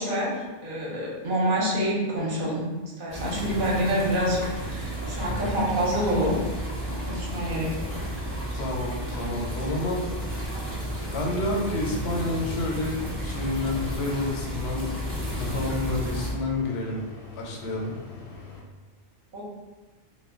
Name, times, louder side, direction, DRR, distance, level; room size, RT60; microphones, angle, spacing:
voice 1, 0.0-2.7 3.0-6.4 6.8-7.9 19.3-19.4, equal, 55° right, -5 dB, 0.8 m, -27 dB
sound 1, 3.1-16.3, right 1 dB, 20° right, 0.4 m, -32 dB
sound 2, 3.6-18.6, left 4 dB, 45° left, 0.6 m, -44 dB
voice 2, 8.5-10.0 11.0-14.9 15.3-17.0 17.4-17.9, left 2 dB, 75° left, -1 dB, 0.8 m, -29 dB
2.1 x 2.1 x 3.5 m, 1.2 s
omnidirectional pair, 1.1 m